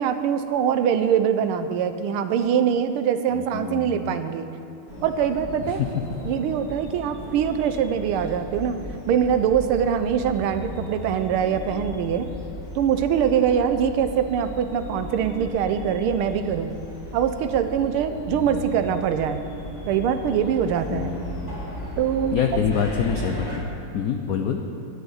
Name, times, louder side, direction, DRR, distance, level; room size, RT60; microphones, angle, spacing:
voice 1, 0.0-4.5 5.0-5.8 6.2-8.8 9.1-12.3 12.7-16.7 17.1-19.4 19.9-21.1 22.0-22.4 24.4-24.5, right 8 dB, 85° right, 10 dB, 1.6 m, -23 dB
voice 2, 3.3-4.2 5.7-5.9 10.4-10.9 18.3-18.9 20.9-21.6 22.3-23.7 23.9-24.6, left 7 dB, 90° left, 5 dB, 0.7 m, -27 dB
sound 1, 4.9-23.6, equal, 20° left, 1.9 m, -36 dB
12.0 x 6.5 x 9.4 m, 2.6 s
omnidirectional pair, 2.4 m